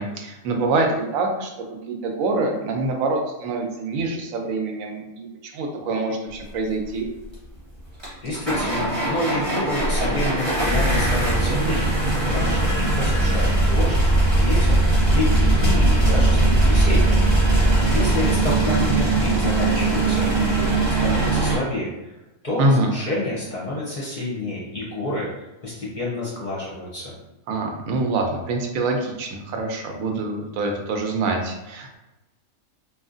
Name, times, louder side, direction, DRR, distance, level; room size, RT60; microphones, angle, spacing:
voice 1, 0.0-1.5 1.9-7.1 22.6-22.9 27.5-31.9, right 2 dB, 85° right, 2 dB, 1.0 m, -25 dB
sound 1, 7.3-7.4 8.0-21.6, right 2 dB, 25° right, 0.8 m, -20 dB
voice 2, 8.2-17.2 17.9-22.1 22.4-25.3 25.6-27.1, left 2 dB, 45° left, -5 dB, 0.6 m, -29 dB
2.9 x 2.4 x 2.4 m, 1.0 s
omnidirectional pair, 1.4 m